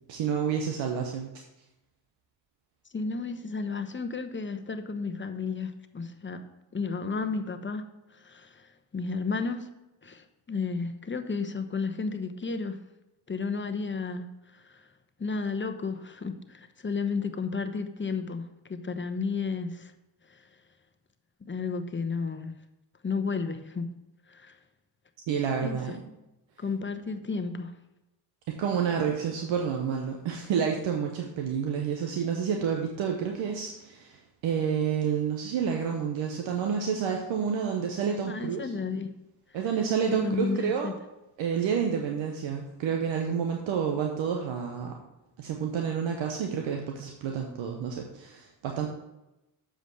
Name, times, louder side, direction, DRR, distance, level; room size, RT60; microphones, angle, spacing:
voice 1, 0.1-1.3 25.3-26.0 28.5-38.7 39.5-40.9 41.4-44.9 45.4-48.9, right 7 dB, 75° right, 2 dB, 1.1 m, -29 dB
voice 2, 2.9-6.4 6.7-9.7 10.0-12.8 13.3-14.9 15.2-19.9 20.3-20.4 21.4-22.5 23.0-23.9 24.3-24.6 25.6-25.8 26.6-27.7 38.3-39.1 40.1-40.9, left 4 dB, 25° left, 8 dB, 1.0 m, -33 dB
7.6 x 5.1 x 6.4 m, 0.95 s
supercardioid pair, 55°, 46 cm